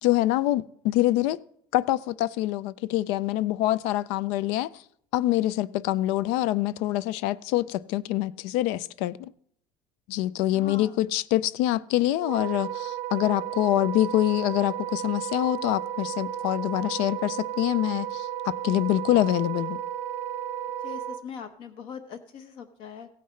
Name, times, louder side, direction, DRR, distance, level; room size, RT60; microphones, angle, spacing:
voice 1, 0.0-1.4 1.7-4.7 5.1-9.3 10.1-19.8, left 15 dB, 65° left, 0.4 m, -25 dB
voice 2, 10.5-11.0 20.8-23.1, left 6 dB, 50° left, 0.9 m, -41 dB
Wind instrument woodwind instrument, 12.2-21.2, right 11 dB, 85° right, 0.7 m, -33 dB
16.0 x 9.3 x 3.2 m
cardioid pair, 160°, 11 cm